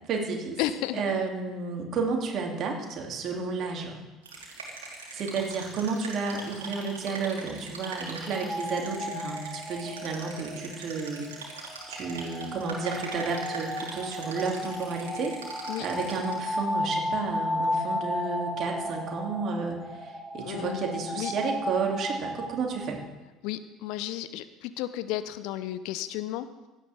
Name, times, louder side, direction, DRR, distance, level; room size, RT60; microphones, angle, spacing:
voice 1, 0.1-0.6 0.9-4.0 5.1-23.0, right 4 dB, 45° right, 1 dB, 2.8 m, -32 dB
voice 2, 0.6-1.0 4.9-5.2 15.7-15.9 20.4-20.9 21.2-21.3 23.4-26.5, left 13 dB, 60° left, 13 dB, 0.6 m, -33 dB
sound 1, 4.2-16.6, right 3 dB, 75° right, 3.1 m, -42 dB
sound 2, 8.3-23.0, left 1 dB, 20° left, 5.5 m, -34 dB
16.5 x 12.0 x 3.6 m, 1.2 s
figure-of-eight pair, 60°, 0 cm